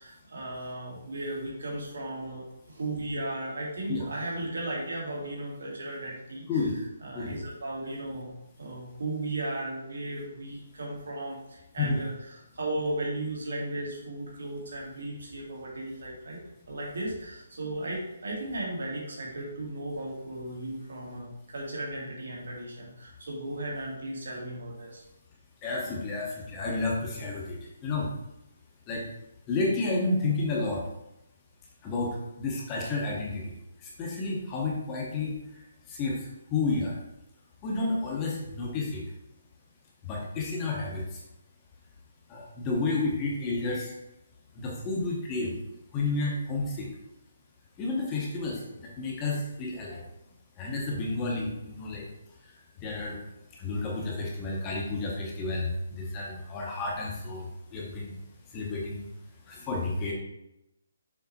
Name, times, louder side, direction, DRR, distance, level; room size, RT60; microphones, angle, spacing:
voice 1, 0.0-2.4 2.7-6.4 7.0-8.3 8.6-12.1 12.5-16.4 16.7-25.0, right 1 dB, 70° right, -4 dB, 2.1 m, -35 dB
voice 2, 25.6-28.1 28.9-29.0 29.5-30.8 31.8-33.5 33.8-35.6 35.9-37.0 37.6-39.0 40.0-41.2 42.3-43.9 44.5-45.5 45.9-46.9 47.8-50.0 50.6-52.0 52.8-53.2 53.6-58.2 58.5-59.1 59.5-60.1, left 3 dB, 15° left, -3 dB, 0.9 m, -31 dB
6.7 x 3.4 x 4.1 m, 0.88 s
hypercardioid pair, 175°, 0 cm